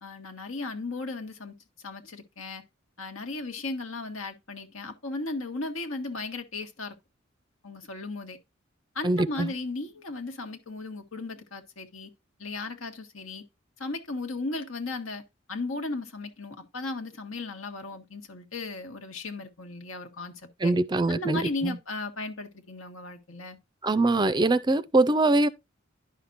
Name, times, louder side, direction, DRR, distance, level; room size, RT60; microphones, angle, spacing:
voice 1, 0.0-1.5 1.8-2.6 3.0-6.9 7.6-8.4 8.9-12.1 12.4-13.4 13.8-15.2 15.5-20.3 20.6-20.7 21.1-23.6, left 2 dB, 85° left, 1.5 m, -36 dB
voice 2, 9.0-9.5 20.6-21.7 23.8-25.5, right 2 dB, 20° right, 0.4 m, -23 dB
11.0 x 5.9 x 2.6 m
head